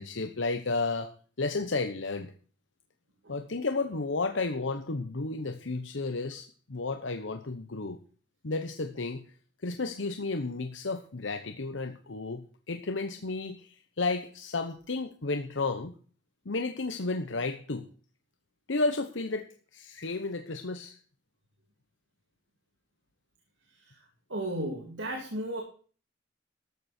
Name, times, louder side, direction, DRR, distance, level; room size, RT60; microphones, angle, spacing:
voice 1, 0.0-2.3 3.3-8.0 8.4-9.3 9.6-16.0 16.4-17.9 18.7-21.0, left 3 dB, 85° left, 7 dB, 1.0 m, -32 dB
voice 2, 24.3-25.6, right 1 dB, 85° right, 1 dB, 2.9 m, -34 dB
13.5 x 13.0 x 4.4 m, 0.42 s
head